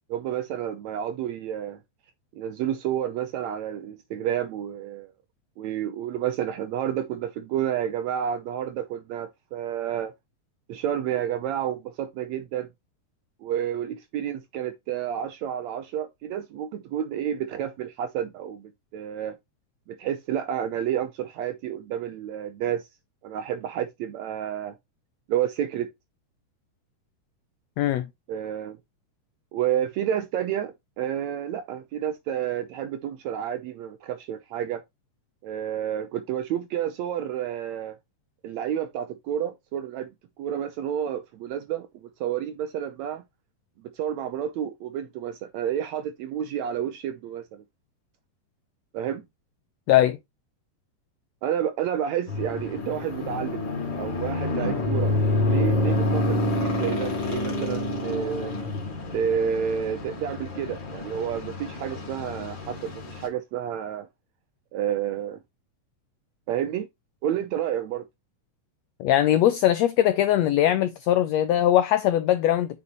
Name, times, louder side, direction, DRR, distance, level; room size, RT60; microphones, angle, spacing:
voice 1, 0.1-1.8 2.3-5.1 5.6-10.1 10.7-12.7 13.4-19.3 19.9-22.9 23.2-24.7 25.3-25.9 28.3-28.8 29.5-34.8 35.4-37.9 38.4-40.1 40.4-43.2 43.9-47.6 48.9-49.2 51.4-53.6 54.0-58.5 59.1-64.1 64.7-65.4 66.5-66.9 67.2-68.0, right 9 dB, 80° right, 1.7 m, -30 dB
voice 2, 27.8-28.1 49.9-50.2 69.0-72.8, left 12 dB, 90° left, 1.5 m, -21 dB
sound 1, 52.3-63.3, left 2 dB, 35° left, 2.6 m, -28 dB
8.5 x 5.3 x 3.0 m
omnidirectional pair, 3.8 m